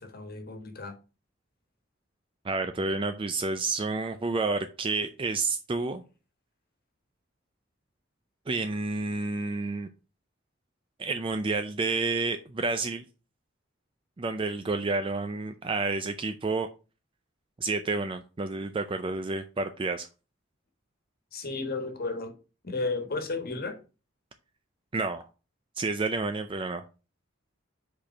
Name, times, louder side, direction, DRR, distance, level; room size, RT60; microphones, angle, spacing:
voice 1, 0.0-0.9 21.3-22.3 22.6-23.8, left 3 dB, 50° left, 1.4 m, -33 dB
voice 2, 2.4-6.0 8.5-9.9 11.0-13.0 14.2-16.7 17.6-20.1 24.9-25.3 25.8-26.8, right 3 dB, 25° right, 0.4 m, -30 dB
5.2 x 4.3 x 5.9 m
head